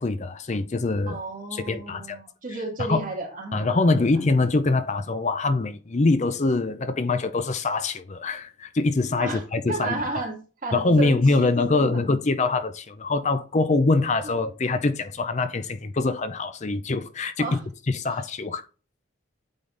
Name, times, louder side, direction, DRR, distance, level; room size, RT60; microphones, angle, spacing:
voice 1, 0.0-1.2 1.5-2.2 2.8-3.0 3.5-10.0 10.7-17.5 17.9-18.6, left 3 dB, 35° left, 0.5 m, -24 dB
voice 2, 1.1-4.1 9.2-10.4 10.6-12.0 14.2-14.5 17.4-17.6, right 3 dB, 40° right, 2.1 m, -33 dB
8.7 x 3.8 x 3.9 m
head